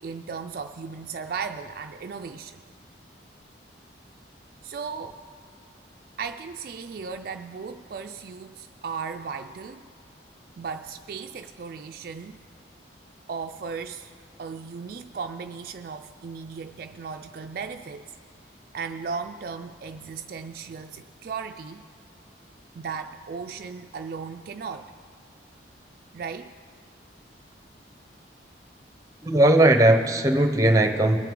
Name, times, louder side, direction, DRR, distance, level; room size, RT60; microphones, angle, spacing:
voice 1, 0.0-2.6 4.6-5.2 6.2-9.8 10.6-12.4 13.3-14.1 14.4-18.1 18.7-21.8 22.7-24.9 26.1-26.5, right 5 dB, 50° right, 6 dB, 0.3 m, -36 dB
voice 2, 29.2-31.2, right 1 dB, 15° right, 6 dB, 0.7 m, -18 dB
20.5 x 9.0 x 3.7 m, 2.3 s
head